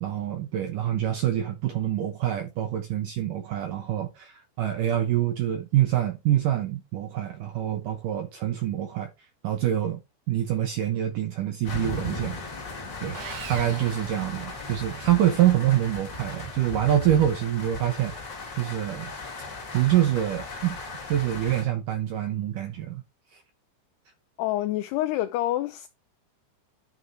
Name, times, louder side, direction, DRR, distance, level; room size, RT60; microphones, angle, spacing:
voice 1, 0.0-9.1 9.4-10.0 10.3-12.4 13.0-13.2 13.5-18.1 18.6-19.1 19.7-20.8 21.1-23.0 23.3-23.4, right 12 dB, 75° right, 1.9 m, -26 dB
sound 1, 11.6-21.6, left 3 dB, 40° left, 1.7 m, -37 dB
Sawing, 13.1-15.0, right 8 dB, 60° right, 2.9 m, -41 dB
voice 2, 24.4-25.9, left 15 dB, 80° left, 2.4 m, -27 dB
11.5 x 4.9 x 4.0 m
omnidirectional pair, 5.3 m